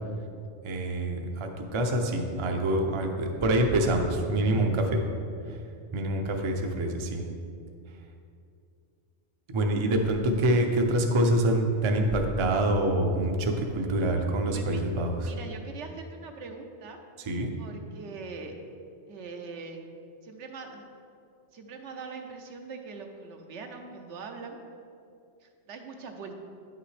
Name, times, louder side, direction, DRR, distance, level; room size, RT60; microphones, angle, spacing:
voice 1, 0.6-5.0 5.9-7.2 9.5-15.3 17.3-17.5, right 1 dB, 35° right, 3 dB, 0.5 m, -26 dB
voice 2, 14.5-14.8 15.2-17.0 17.6-18.6 19.1-19.8 20.2-20.8 21.5-24.6 25.4-26.3, right 4 dB, 75° right, 4 dB, 1.0 m, -42 dB
9.4 x 5.8 x 3.3 m, 2.4 s
omnidirectional pair, 1.2 m